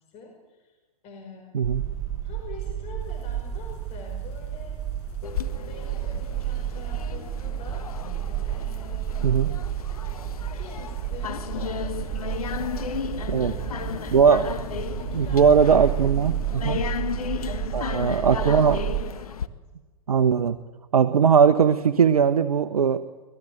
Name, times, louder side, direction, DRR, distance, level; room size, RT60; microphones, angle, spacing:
voice 1, 0.1-0.8 1.0-1.7 2.2-4.8 5.6-7.9 8.4-9.4 10.0-10.2 10.5-14.3 14.9-15.8 16.9-17.1 17.6-19.2 19.5-19.6, left 4 dB, 35° left, 2 dB, 5.5 m, -46 dB
sound 1, 1.6-19.0, right 11 dB, 15° right, 7.8 m, -31 dB
sound 2, 3.0-16.7, left 4 dB, 50° left, 6.7 m, -46 dB
sound 3, 5.2-19.5, left 7 dB, 70° left, 1.5 m, -34 dB
voice 2, 14.1-14.5 15.1-16.8 17.7-18.8 20.1-20.6 20.9-23.0, right 6 dB, 75° right, 9 dB, 1.0 m, -19 dB
25.0 x 19.5 x 7.9 m, 1.3 s
figure-of-eight pair, 110°, 19 cm